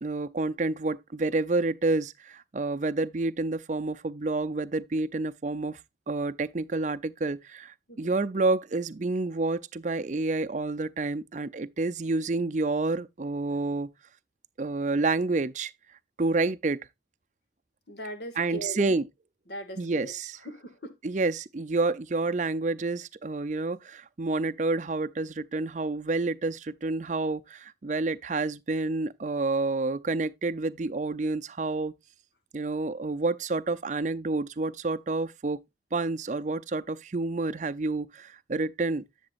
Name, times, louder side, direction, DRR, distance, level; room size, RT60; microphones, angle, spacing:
voice 1, 0.0-5.8 6.1-13.9 14.6-15.7 16.2-16.8 18.4-19.1 19.8-20.4 21.0-31.9 32.5-35.6 35.9-39.0, right 3 dB, 40° right, 0.5 m, -29 dB
voice 2, 17.9-19.0 19.5-20.1 20.4-21.0, equal, 65° left, 2.1 m, -39 dB
10.5 x 7.1 x 2.5 m
head